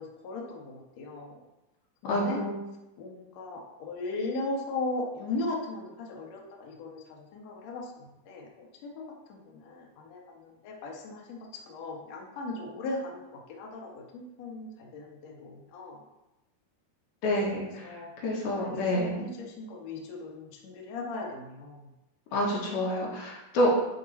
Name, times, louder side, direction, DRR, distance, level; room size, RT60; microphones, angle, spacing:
voice 1, 0.0-1.4 2.0-2.4 3.0-9.0 9.3-16.0 17.8-18.1 18.5-21.9, left 2 dB, 60° left, -2 dB, 2.0 m, -38 dB
voice 2, 2.0-2.5 17.2-17.9 18.2-19.2 22.3-23.7, equal, 80° left, -2 dB, 3.2 m, -28 dB
10.0 x 3.8 x 4.1 m, 0.96 s
omnidirectional pair, 4.4 m